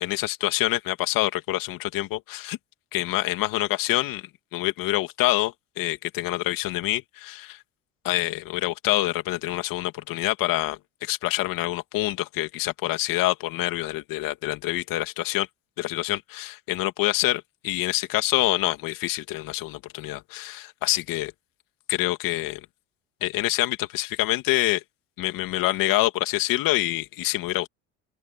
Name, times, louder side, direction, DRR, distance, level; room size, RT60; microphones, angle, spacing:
voice 1, 0.0-2.6 2.9-4.2 4.5-7.6 8.0-15.5 15.8-21.3 21.9-22.6 23.2-24.8 25.2-27.7, left 17 dB, 70° left, 2.6 m, -26 dB
open air
supercardioid pair, 85°, 35 cm